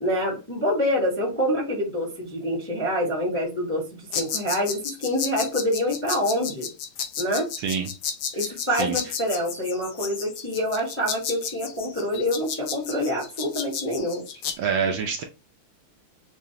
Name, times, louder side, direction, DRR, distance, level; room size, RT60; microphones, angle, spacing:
voice 1, 0.0-6.7 7.2-7.5 8.3-14.2, equal, 10° left, -2 dB, 0.7 m, -26 dB
sound 1, 4.1-14.5, left 7 dB, 70° left, 1.0 m, -33 dB
voice 2, 14.6-15.2, right 6 dB, 75° right, 4 dB, 1.2 m, -25 dB
6.1 x 2.1 x 2.8 m, 0.30 s
omnidirectional pair, 2.3 m